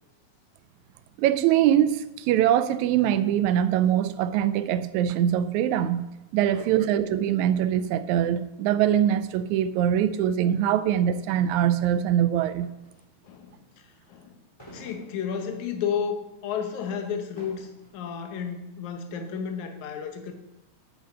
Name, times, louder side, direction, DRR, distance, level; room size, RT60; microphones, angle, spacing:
voice 1, 1.2-12.7, right 10 dB, 80° right, 1.9 m, -23 dB
voice 2, 6.5-6.9 13.2-14.4 14.7-20.3, left 7 dB, 80° left, 2.4 m, -32 dB
sound 1, 12.3-13.1 14.6-15.8 16.3-16.4 17.1-17.9, equal, 10° left, 3.0 m, -49 dB
11.0 x 6.5 x 5.3 m
omnidirectional pair, 3.4 m